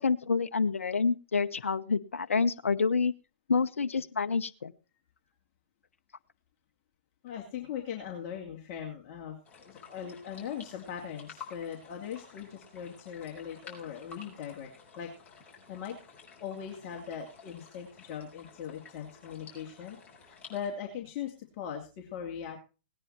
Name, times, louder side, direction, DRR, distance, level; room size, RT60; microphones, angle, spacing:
voice 1, 0.0-3.1 3.5-4.7, left 5 dB, 85° left, 10 dB, 0.9 m, -28 dB
voice 2, 7.2-14.7 14.9-15.1 15.7-16.0 16.4-20.0 20.2-22.6, left 8 dB, 35° left, 0 dB, 2.8 m, -40 dB
sound 1, 9.4-20.7, left 5 dB, 20° left, 5.0 m, -52 dB
18.0 x 9.9 x 4.3 m, 0.34 s
hypercardioid pair, 130°, 7 cm